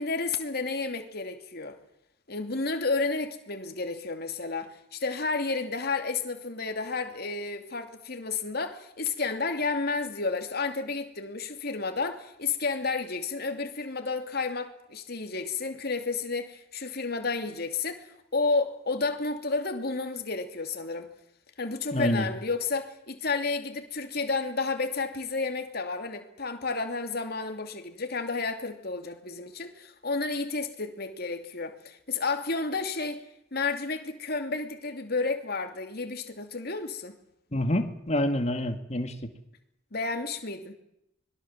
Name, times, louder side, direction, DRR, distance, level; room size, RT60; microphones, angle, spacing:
voice 1, 0.0-1.8 2.3-21.1 21.6-33.2 33.5-37.2 39.9-40.7, left 4 dB, 55° left, 2.8 m, -31 dB
voice 2, 21.9-22.3 37.5-39.3, left 1 dB, 35° left, 2.3 m, -27 dB
25.5 x 21.5 x 7.5 m
head